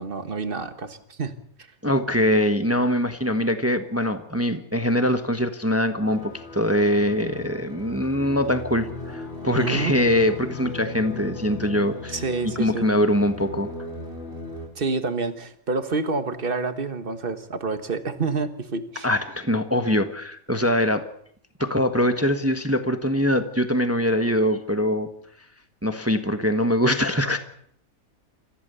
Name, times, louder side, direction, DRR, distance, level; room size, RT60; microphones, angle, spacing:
voice 1, 0.0-1.3 9.6-10.0 12.1-12.9 14.7-19.1, right 4 dB, 40° right, 10 dB, 1.6 m, -28 dB
voice 2, 1.8-12.2 12.6-13.7 19.0-21.0 21.6-25.1 25.8-27.4, equal, 10° right, 8 dB, 1.2 m, -23 dB
sound 1, 6.0-14.7, left 3 dB, 45° left, 3.7 m, -37 dB
28.0 x 15.0 x 6.9 m, 0.66 s
omnidirectional pair, 1.5 m